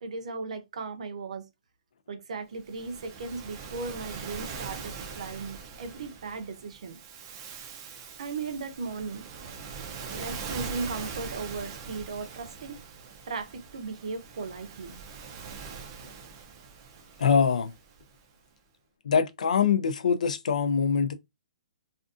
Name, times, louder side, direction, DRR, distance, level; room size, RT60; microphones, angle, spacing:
voice 1, 0.0-1.5 2.1-7.0 8.2-9.2 10.1-12.8 13.3-14.9, right 4 dB, 65° right, 0.6 m, -37 dB
Waves surf, 2.6-18.1, right 5 dB, 25° right, 0.4 m, -42 dB
voice 2, 17.2-17.7 19.0-21.1, left 6 dB, 75° left, 0.5 m, -24 dB
2.5 x 2.4 x 2.4 m
hypercardioid pair, 170°, 4 cm